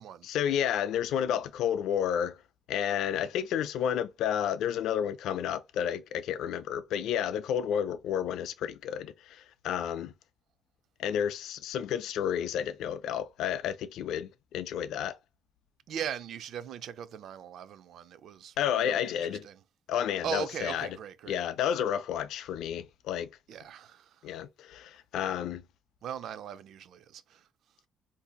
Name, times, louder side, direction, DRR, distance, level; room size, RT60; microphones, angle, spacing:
voice 1, 0.3-2.4 2.7-10.1 11.0-15.2 18.6-19.5 19.9-20.9 21.3-23.3 24.2-25.6, left 9 dB, 80° left, 0.4 m, -31 dB
voice 2, 15.9-19.6 20.2-21.4 23.5-24.3 26.0-27.5, right 8 dB, 60° right, 0.4 m, -39 dB
3.8 x 2.6 x 2.3 m
cardioid pair, 150°, 0 cm